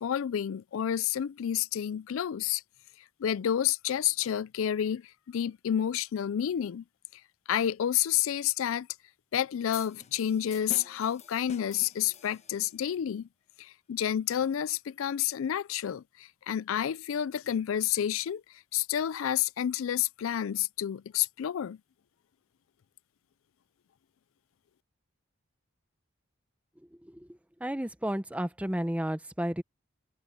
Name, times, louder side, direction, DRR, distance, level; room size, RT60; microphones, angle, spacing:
voice 1, 0.0-2.6 3.2-5.0 5.3-6.8 7.5-8.9 9.3-13.3 13.6-18.4 18.7-21.8, left 10 dB, 85° left, 0.4 m, -29 dB
sound 1, 9.7-12.8, left 4 dB, 35° left, 1.3 m, -47 dB
voice 2, 27.6-29.6, equal, 5° right, 0.8 m, -31 dB
open air
head